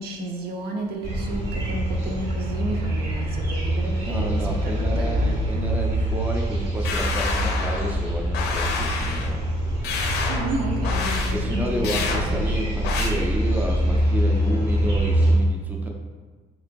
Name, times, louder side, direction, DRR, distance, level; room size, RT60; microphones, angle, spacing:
voice 1, 0.0-5.4 10.3-12.5, right 2 dB, 65° right, 1 dB, 0.6 m, -32 dB
sound 1, 1.0-15.4, equal, 90° right, 1.2 m, -24 dB
voice 2, 4.0-9.5 11.3-15.9, equal, 10° right, 0 dB, 0.4 m, -30 dB
sound 2, 6.8-7.9 8.3-9.3 9.8-10.5 10.8-11.3 11.8-12.2 12.8-13.1, left 4 dB, 85° left, 0.5 m, -28 dB
3.7 x 3.0 x 2.6 m, 1.4 s
cardioid pair, 110°, 17 cm